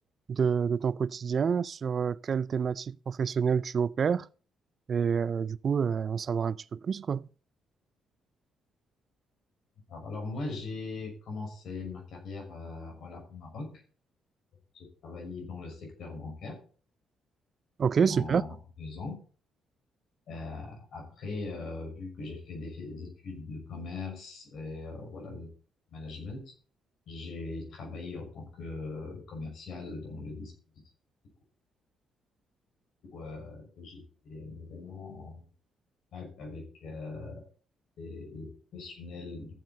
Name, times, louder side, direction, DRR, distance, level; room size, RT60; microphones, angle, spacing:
voice 1, 0.3-4.3 4.9-7.3 17.8-18.4, right 6 dB, 50° right, 0.4 m, -28 dB
voice 2, 9.9-13.8 14.7-16.6 17.9-19.2 20.3-25.5 25.9-26.4 27.1-30.5 33.1-35.5 36.1-37.4 38.0-39.5, left 3 dB, 70° left, 6.1 m, -40 dB
15.0 x 7.7 x 4.2 m
cardioid pair, 90°, 0 cm